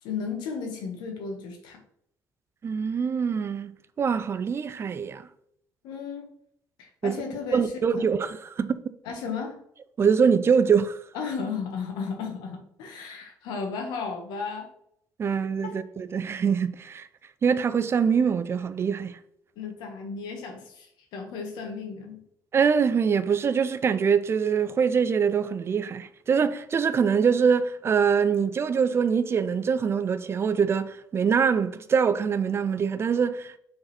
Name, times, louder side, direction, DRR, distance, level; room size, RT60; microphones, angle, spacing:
voice 1, 0.0-1.8 5.8-6.3 6.8-8.1 9.0-9.6 11.1-14.7 15.6-15.8 19.5-22.2, left 5 dB, 90° left, 1.5 m, -34 dB
voice 2, 2.6-5.3 7.0-7.1 7.5-8.8 10.0-11.0 15.2-17.1 17.4-19.2 22.5-33.5, right 6 dB, 35° right, 0.5 m, -24 dB
6.5 x 4.0 x 4.3 m
cardioid pair, 110°, 7 cm